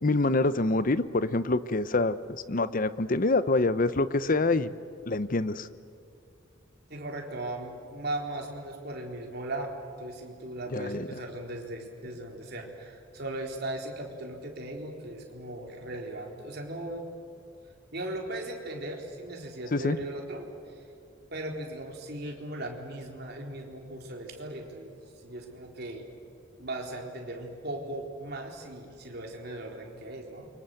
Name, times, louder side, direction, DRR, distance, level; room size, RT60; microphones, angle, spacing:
voice 1, 0.0-2.2 2.5-4.7 5.1-5.7 10.7-11.1 19.7-20.0, left 2 dB, 45° left, 14 dB, 0.8 m, -26 dB
voice 2, 6.9-17.1 17.9-20.8 21.3-26.0 26.6-30.5, right 1 dB, 55° right, 1 dB, 4.0 m, -38 dB
29.5 x 24.5 x 7.9 m, 2.6 s
head